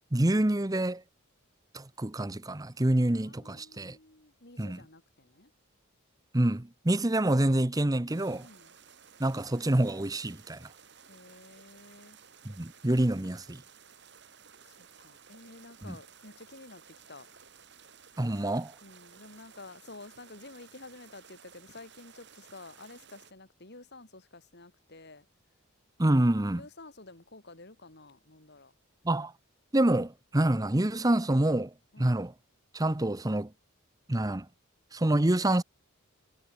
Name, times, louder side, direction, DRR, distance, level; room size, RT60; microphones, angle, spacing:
voice 1, 0.1-1.0 1.7-4.0 4.6-4.8 6.3-8.5 9.2-10.7 12.4-13.6 15.9-16.0 18.2-18.7 26.0-26.6 29.0-29.3 29.7-32.3 32.7-33.5 34.1-34.5 34.9-35.6, right 1 dB, 15° right, 0.8 m, -27 dB
voice 2, 3.2-5.5 8.3-8.7 11.1-12.2 14.6-14.8 15.0-17.3 18.8-25.3 26.5-28.7 31.9-32.2, left 2 dB, 50° left, 2.9 m, -51 dB
sound 1, 8.1-23.3, right 7 dB, 50° right, 7.3 m, -56 dB
head